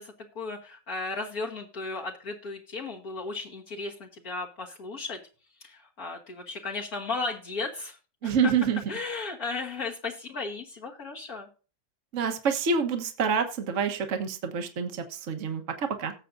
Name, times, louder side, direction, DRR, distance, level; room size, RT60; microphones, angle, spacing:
voice 1, 0.0-5.2 5.6-8.0 8.2-8.4 8.9-11.5, left 3 dB, 60° left, -1 dB, 1.8 m, -35 dB
voice 2, 8.2-8.8 12.1-16.1, right 6 dB, 50° right, 5 dB, 1.5 m, -27 dB
18.0 x 7.5 x 2.6 m, 0.35 s
omnidirectional pair, 1.9 m